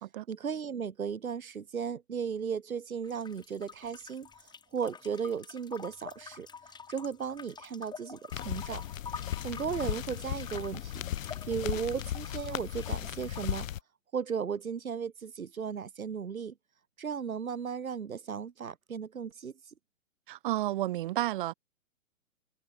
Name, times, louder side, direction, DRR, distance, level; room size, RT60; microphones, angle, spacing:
voice 1, 0.3-8.8 9.1-11.0 11.5-13.7 14.1-16.5 17.0-19.5, right 6 dB, 80° right, 1.5 m, -36 dB
sound 1, 3.0-13.6, left 6 dB, 10° left, 3.6 m, -48 dB
sound 2, 8.3-13.8, left 11 dB, 70° left, 0.5 m, -36 dB
voice 2, 20.3-21.5, right 15 dB, 40° right, 0.8 m, -31 dB
hypercardioid pair, 130°, 41 cm